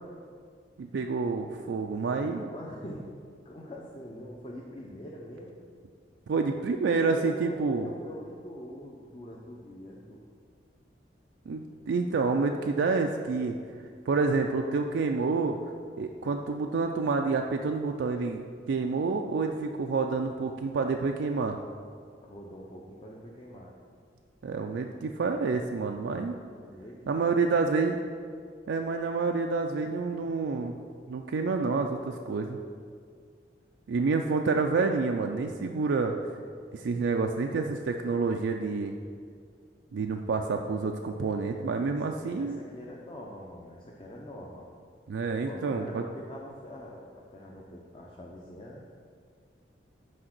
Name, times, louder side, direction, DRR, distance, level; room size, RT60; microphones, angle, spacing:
voice 1, 0.8-2.5 6.3-7.9 11.5-13.6 14.1-15.6 16.0-18.4 18.7-21.6 24.4-26.3 27.1-28.0 28.7-30.8 31.1-32.6 33.9-36.1 36.7-38.9 39.9-42.6 45.1-46.0, right 4 dB, 85° right, 3 dB, 0.4 m, -28 dB
voice 2, 2.4-3.1 3.4-5.6 7.0-10.2 22.2-23.7 26.6-27.0 27.2-27.5 41.8-44.7 45.4-48.8, equal, 30° left, -3 dB, 0.6 m, -44 dB
6.3 x 4.8 x 6.0 m, 2.1 s
head